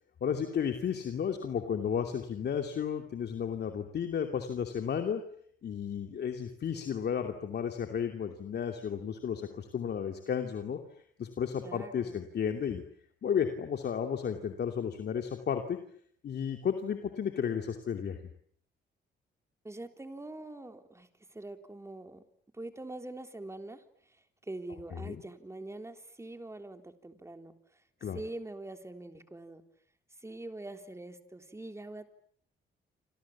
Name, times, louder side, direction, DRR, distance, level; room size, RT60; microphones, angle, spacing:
voice 1, 0.2-5.2 5.6-10.8 11.2-12.8 13.2-15.8 16.2-18.2 24.9-25.2 28.0-28.2, left 7 dB, 55° left, 5 dB, 2.7 m, -33 dB
voice 2, 11.6-12.2 19.6-22.3 22.5-23.8 24.4-27.5 28.0-29.6 30.2-32.1, right 2 dB, 15° right, 7 dB, 3.7 m, -44 dB
28.0 x 27.5 x 7.4 m, 0.62 s
cardioid pair, 90°, 20 cm